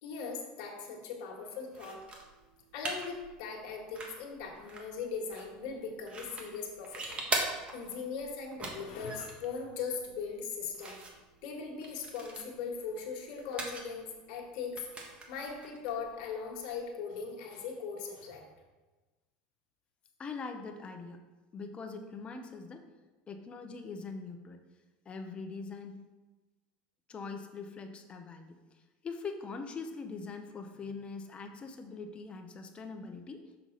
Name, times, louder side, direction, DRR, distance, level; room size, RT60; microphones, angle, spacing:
voice 1, 0.0-2.0 2.7-11.0 11.4-14.8 15.3-18.4, left 5 dB, 65° left, 0 dB, 1.7 m, -39 dB
sound 1, 1.7-16.9, right 2 dB, 25° right, 1.4 m, -43 dB
voice 2, 20.2-21.2 21.5-22.8 23.3-24.6 25.0-26.0 27.1-28.6 29.0-33.4, left 4 dB, 25° left, 6 dB, 0.9 m, -42 dB
6.3 x 6.0 x 4.0 m, 1.2 s
supercardioid pair, 110°, 4 cm